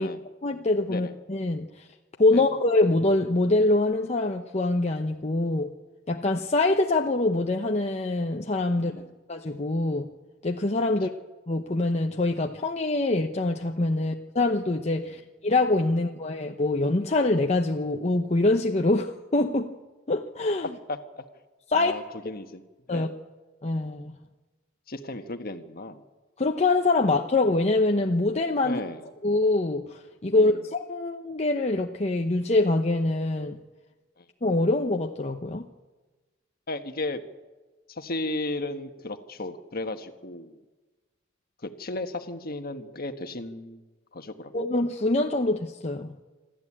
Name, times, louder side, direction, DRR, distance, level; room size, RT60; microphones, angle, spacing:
voice 1, 0.4-1.7 2.2-5.7 6.1-8.9 9.3-10.1 10.4-11.1 11.5-19.7 20.1-20.7 21.7-21.9 22.9-23.1 23.6-24.2 26.4-28.8 29.2-33.6 34.4-35.7 44.5-46.2, left 2 dB, 35° left, 3 dB, 0.9 m, -24 dB
voice 2, 8.8-9.2 14.0-14.1 15.0-15.2 20.9-21.2 21.7-22.6 22.9-23.2 24.9-26.0 28.6-29.0 30.3-30.6 34.2-34.3 36.7-37.2 37.9-40.6 41.6-43.8 44.1-44.6, left 2 dB, 50° left, 7 dB, 1.5 m, -35 dB
27.0 x 13.0 x 8.7 m, 1.2 s
head